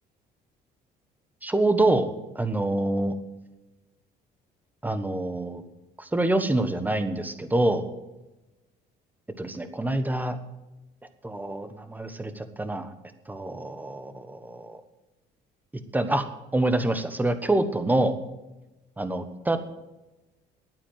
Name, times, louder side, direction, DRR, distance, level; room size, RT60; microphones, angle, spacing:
voice 1, 1.4-3.1 4.8-5.6 6.0-7.9 9.4-10.4 11.2-12.9 13.3-14.8 15.9-16.3 16.5-18.1 19.0-19.6, right 2 dB, 10° right, 10 dB, 1.2 m, -26 dB
11.0 x 9.5 x 9.0 m, 1.0 s
cardioid pair, 110°, 17 cm